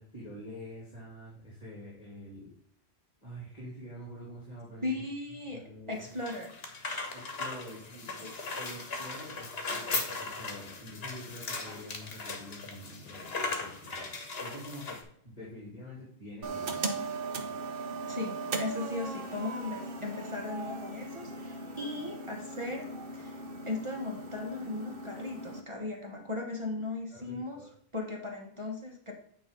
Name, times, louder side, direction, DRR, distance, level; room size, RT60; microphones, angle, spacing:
voice 1, 0.0-2.5 3.2-4.9 5.5-6.0 7.1-8.1 8.5-16.8 27.1-27.7, equal, 40° left, -6 dB, 2.6 m, -46 dB
voice 2, 4.8-6.6 7.7-7.8 8.1-8.4 18.1-23.4 23.6-27.7 27.9-29.1, left 3 dB, 30° right, 1 dB, 1.2 m, -37 dB
sound 1, 5.9-15.0, left 3 dB, 70° left, 1.4 m, -38 dB
sound 2, 16.4-25.6, right 3 dB, 65° right, 1.1 m, -38 dB
9.1 x 3.1 x 5.2 m, 0.67 s
omnidirectional pair, 1.1 m